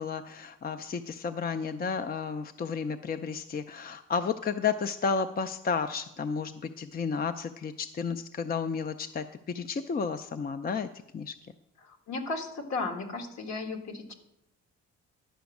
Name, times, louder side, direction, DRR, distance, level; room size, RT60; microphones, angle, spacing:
voice 1, 0.0-9.2 9.5-10.9 11.1-11.3, left 5 dB, 30° left, 9 dB, 0.5 m, -32 dB
voice 2, 11.8-14.1, left 3 dB, 60° left, 3 dB, 1.8 m, -35 dB
11.5 x 5.2 x 7.1 m, 0.83 s
cardioid pair, 90°, 30 cm